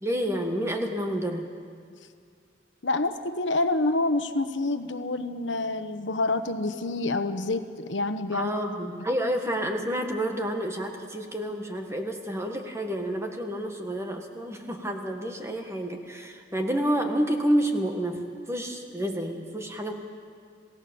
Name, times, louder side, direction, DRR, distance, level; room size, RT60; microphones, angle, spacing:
voice 1, 0.0-1.5 8.3-18.2 18.5-19.9, equal, 15° right, 4 dB, 1.7 m, -29 dB
voice 2, 2.8-8.5, left 2 dB, 85° left, 9 dB, 1.2 m, -27 dB
27.0 x 17.0 x 7.0 m, 2.3 s
head